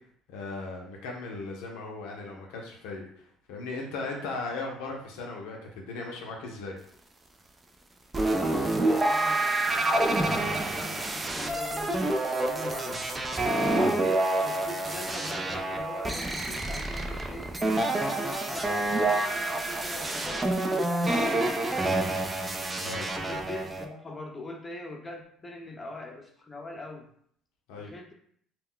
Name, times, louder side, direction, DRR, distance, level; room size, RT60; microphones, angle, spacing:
voice 1, 0.3-6.7 13.7-14.0 22.8-23.1 27.7-27.9, left 3 dB, 85° left, 0 dB, 0.5 m, -37 dB
sound 1, 8.1-23.9, right 2 dB, 25° right, 0.4 m, -28 dB
voice 2, 8.2-13.1 13.7-17.5 17.9-22.2 23.2-27.1 27.8-28.1, left 2 dB, 25° left, 1 dB, 0.6 m, -42 dB
2.2 x 2.1 x 3.7 m, 0.63 s
supercardioid pair, 80°, 0 cm